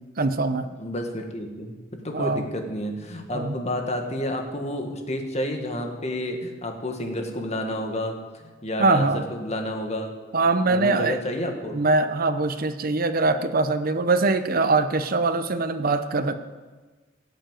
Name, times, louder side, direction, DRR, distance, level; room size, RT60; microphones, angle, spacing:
voice 1, 0.2-0.7 2.1-2.5 3.3-3.5 8.8-9.2 10.3-11.2 11.7-16.4, right 3 dB, 50° right, 10 dB, 0.8 m, -22 dB
voice 2, 0.8-1.8 2.0-10.1 10.7-11.7, left 1 dB, 35° left, 4 dB, 1.9 m, -30 dB
17.5 x 7.5 x 9.1 m, 1.3 s
head